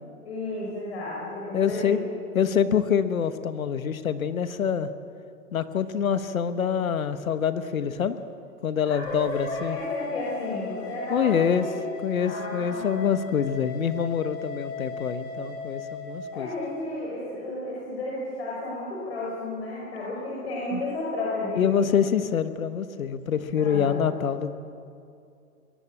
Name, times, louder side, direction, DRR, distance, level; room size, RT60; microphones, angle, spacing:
voice 1, 0.2-2.0 8.8-11.8 12.2-12.9 16.3-21.8 23.6-23.9, left 2 dB, 45° left, -4 dB, 5.0 m, -33 dB
voice 2, 1.5-2.0 2.3-4.9 5.5-8.2 8.6-9.8 11.1-11.7 12.0-16.5 20.7-20.8 21.6-24.5, left 7 dB, 60° left, 11 dB, 1.2 m, -25 dB
sound 1, 9.0-16.7, left 3 dB, 20° left, 4.3 m, -37 dB
22.0 x 17.5 x 8.4 m, 2.4 s
hypercardioid pair, 175°, 45 cm